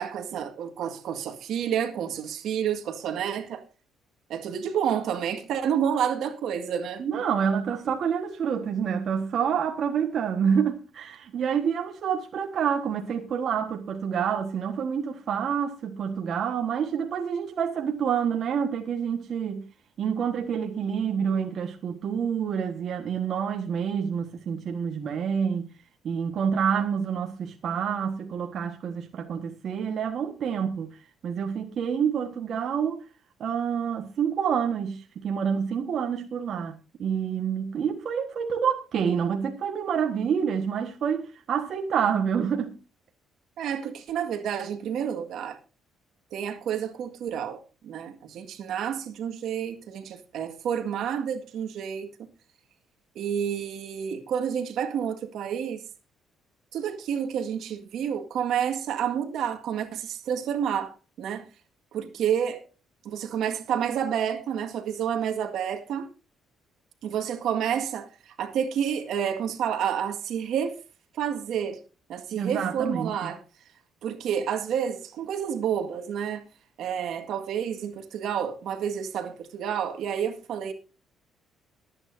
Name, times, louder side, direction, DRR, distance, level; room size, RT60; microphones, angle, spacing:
voice 1, 0.0-3.6 4.3-7.0 43.6-45.6 46.3-52.1 53.1-55.8 56.7-61.5 61.9-62.6 63.0-66.1 67.0-70.8 71.2-71.8 72.1-73.4 74.0-76.4 76.8-80.7, right 8 dB, 70° right, 1.8 m, -29 dB
voice 2, 7.0-19.6 20.0-25.7 26.0-30.9 31.2-33.0 33.4-42.7 72.3-73.3, right 7 dB, 55° right, 1.4 m, -28 dB
22.5 x 9.0 x 2.7 m
cardioid pair, 110°, 0 cm